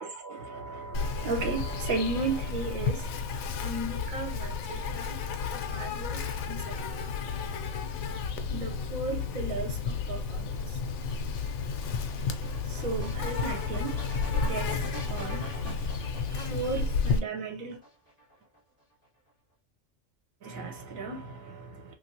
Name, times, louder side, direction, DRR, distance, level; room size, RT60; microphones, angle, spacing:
voice 1, 0.0-3.3 3.6-5.2 5.5-7.0 8.5-10.8 12.6-17.8 20.4-21.9, right 3 dB, 85° right, 1.3 m, -36 dB
Insect, 0.9-17.2, left 5 dB, 85° left, 1.0 m, -32 dB
sound 1, 9.5-16.9 17.7-18.6, equal, 10° right, 2.0 m, -44 dB
3.3 x 2.7 x 2.7 m
omnidirectional pair, 1.4 m